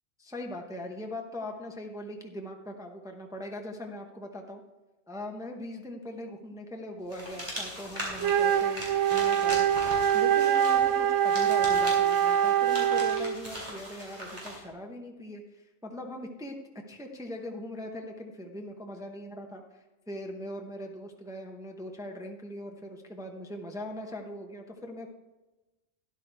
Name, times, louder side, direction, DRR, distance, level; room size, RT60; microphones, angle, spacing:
voice 1, 0.2-4.6 5.1-9.7 10.1-16.6 16.9-25.1, left 1 dB, 5° right, 2 dB, 0.7 m, -40 dB
sound 1, 7.1-14.6, equal, 40° right, 3.6 m, -40 dB
Wind instrument woodwind instrument, 8.2-13.4, right 9 dB, 90° right, 0.9 m, -24 dB
12.5 x 10.5 x 3.4 m, 1.1 s
omnidirectional pair, 1.2 m